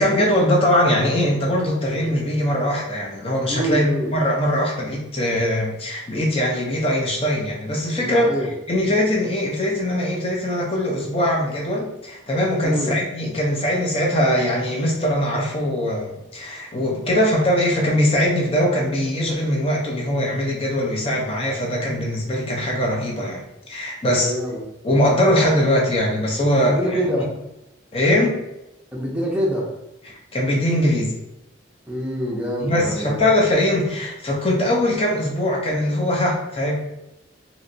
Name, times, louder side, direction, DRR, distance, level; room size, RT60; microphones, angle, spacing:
voice 1, 0.0-23.4 23.7-24.3 24.8-27.0 27.9-28.4 30.0-31.1 32.6-36.8, left 1 dB, 30° left, -2 dB, 0.7 m, -21 dB
voice 2, 3.5-4.1 8.0-8.5 12.6-12.9 24.0-24.6 26.6-27.3 28.9-29.7 31.9-33.2, equal, 5° right, -4 dB, 0.6 m, -25 dB
3.1 x 2.9 x 2.7 m, 0.91 s
head